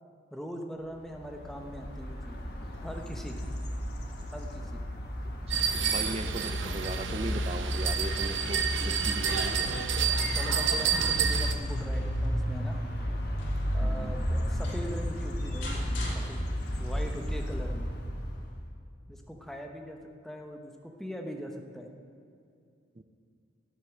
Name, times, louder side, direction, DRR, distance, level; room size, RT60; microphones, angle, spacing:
voice 1, 0.3-2.4 2.8-3.5 4.3-4.8 10.3-12.8 13.7-16.5 16.8-17.9 19.1-20.0 20.2-21.9, equal, ahead, 2 dB, 0.9 m, -41 dB
sound 1, 1.1-18.6, equal, 55° left, 1.5 m, -33 dB
voice 2, 5.5-9.8 13.8-14.3 23.0-23.1, right 2 dB, 30° right, 10 dB, 0.4 m, -38 dB
sound 2, 5.5-11.5, right 7 dB, 80° right, 0.8 m, -30 dB
sound 3, 8.8-10.7 11.2-13.8 14.3-14.4 14.6-16.9, left 2 dB, 85° left, 2.9 m, -46 dB
11.0 x 8.3 x 7.1 m, 2.4 s
head